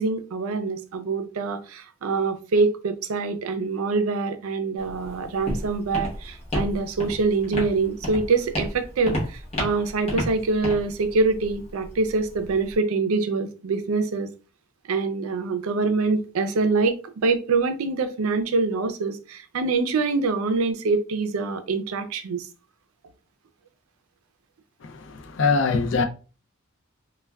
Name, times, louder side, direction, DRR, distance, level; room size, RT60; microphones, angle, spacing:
voice 1, 0.0-14.3 14.9-22.5, right 3 dB, 85° right, 0.4 m, -25 dB
Walk footsteps, 4.8-12.7, left 1 dB, 30° left, 0.8 m, -32 dB
voice 2, 25.4-26.0, left 4 dB, 60° left, 0.4 m, -20 dB
3.4 x 2.2 x 2.2 m
head